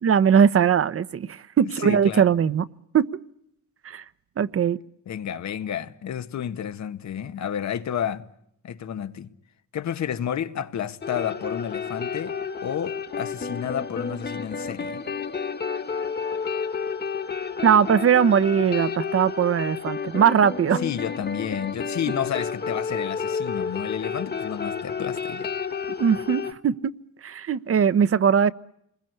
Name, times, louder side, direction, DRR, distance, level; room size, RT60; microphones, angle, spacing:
voice 1, 0.0-2.7 2.9-3.1 3.8-4.0 4.4-4.8 17.6-20.8 26.0-26.9 27.2-28.5, right 7 dB, 50° right, 1.2 m, -20 dB
voice 2, 1.8-2.3 5.1-8.3 8.6-9.3 9.7-12.4 12.6-15.0 20.8-25.5, left 9 dB, 65° left, 1.8 m, -31 dB
sound 1, 11.0-26.5, left 5 dB, 35° left, 2.1 m, -31 dB
28.0 x 22.0 x 8.1 m
cardioid pair, 90°, 30 cm